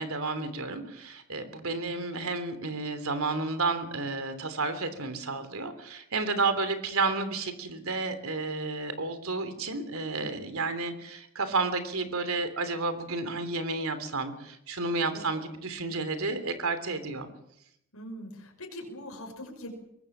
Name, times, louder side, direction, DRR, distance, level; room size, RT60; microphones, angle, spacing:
voice 1, 0.0-17.3, right 3 dB, 75° right, 10 dB, 3.3 m, -31 dB
voice 2, 17.9-19.7, left 1 dB, 80° left, 2 dB, 5.6 m, -42 dB
23.0 x 19.5 x 7.4 m, 0.75 s
head